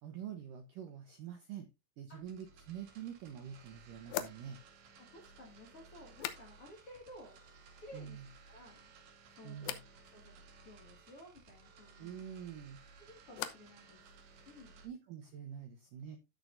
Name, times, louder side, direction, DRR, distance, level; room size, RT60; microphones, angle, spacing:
voice 1, 0.0-1.7 2.0-4.6 7.9-8.3 9.4-9.8 12.0-12.8 14.8-16.2, right 9 dB, 90° right, 7 dB, 1.9 m, -46 dB
sound 1, 2.2-14.9, right 4 dB, 60° right, 3.4 m, -59 dB
sound 2, 2.8-2.9 4.1-6.9 7.2-7.8 8.1-8.7 9.6-9.9 12.4-13.8 14.1-14.7, left 11 dB, 75° left, 2.8 m, -46 dB
voice 2, 5.0-7.4 7.8-8.9 9.3-12.2 13.0-14.0 14.5-14.8, left 1 dB, 45° left, 1 dB, 2.0 m, -55 dB
16.0 x 6.4 x 2.6 m, 0.23 s
omnidirectional pair, 5.5 m